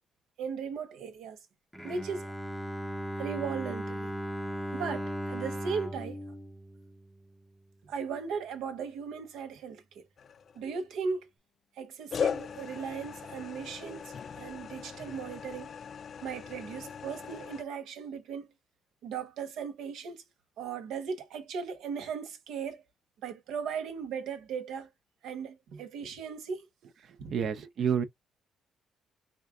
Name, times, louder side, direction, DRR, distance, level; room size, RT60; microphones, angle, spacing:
voice 1, 0.4-1.4 1.8-2.3 3.2-4.1 4.7-6.2 7.8-10.0 10.5-11.3 11.8-15.7 16.2-18.5 19.0-20.2 20.6-22.8 23.2-24.9 25.2-26.7 27.2-27.3, right 6 dB, 85° right, 1.0 m, -37 dB
Bowed string instrument, 1.7-7.7, equal, ahead, 0.6 m, -37 dB
sound 1, 10.2-10.8 12.1-17.6, left 7 dB, 55° left, 0.4 m, -38 dB
voice 2, 27.0-28.0, right 7 dB, 65° right, 0.6 m, -30 dB
4.3 x 2.4 x 3.6 m
cardioid pair, 90°, 0 cm